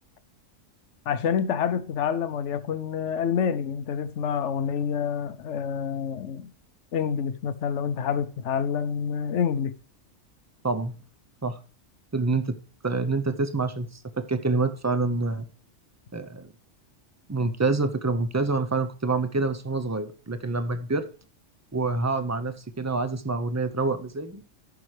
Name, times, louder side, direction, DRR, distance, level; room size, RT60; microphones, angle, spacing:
voice 1, 1.1-6.5 6.9-9.7, left 7 dB, 70° left, 1.0 m, -27 dB
voice 2, 12.1-12.5 12.8-15.5 16.1-16.5 17.3-21.1 21.7-24.4, right 3 dB, 25° right, 0.3 m, -27 dB
14.0 x 5.9 x 3.2 m
omnidirectional pair, 1.3 m